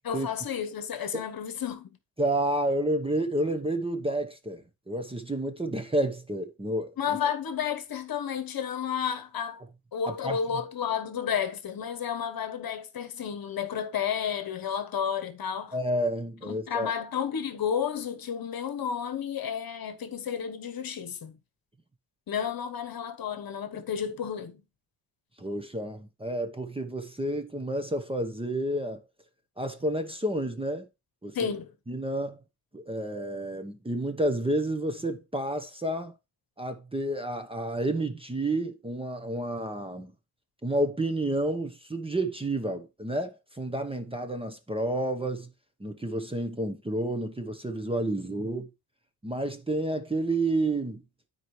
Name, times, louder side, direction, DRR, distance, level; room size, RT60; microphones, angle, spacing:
voice 1, 0.0-1.9 7.0-9.6 9.9-15.7 16.4-21.4 22.3-24.6 31.3-31.7, left 7 dB, 45° left, 1.2 m, -31 dB
voice 2, 2.2-6.9 10.1-10.4 15.7-16.9 25.4-29.0 29.6-30.9 31.2-31.4 31.9-32.4 32.7-36.1 36.6-40.1 40.6-45.5 45.8-48.7 49.2-51.0, right 1 dB, 10° right, 1.0 m, -30 dB
12.5 x 4.6 x 3.2 m
cardioid pair, 100°, 49 cm